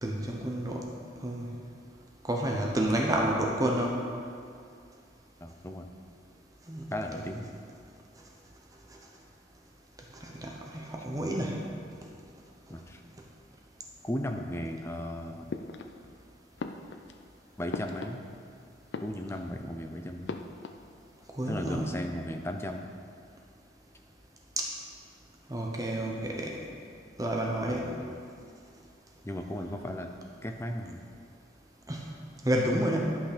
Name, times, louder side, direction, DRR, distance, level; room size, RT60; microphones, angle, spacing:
voice 1, 0.0-0.8 1.2-1.5 2.2-4.0 6.7-6.9 10.2-11.6 21.4-21.8 24.6-24.7 25.5-26.6 27.2-27.9 31.9-32.0 32.4-33.2, right 1 dB, 20° right, 0 dB, 0.8 m, -29 dB
voice 2, 5.4-5.9 6.9-7.5 12.7-13.0 14.0-15.5 17.6-18.2 19.0-20.4 21.5-22.9 27.7-28.1 29.2-30.1 30.4-31.0, left 1 dB, 15° left, 4 dB, 0.6 m, -36 dB
sound 1, 15.5-16.2 16.6-18.6 18.8-19.7 20.3-21.3 21.5-22.1, left 3 dB, 70° left, 0.5 m, -41 dB
11.0 x 5.7 x 5.1 m, 2.4 s
head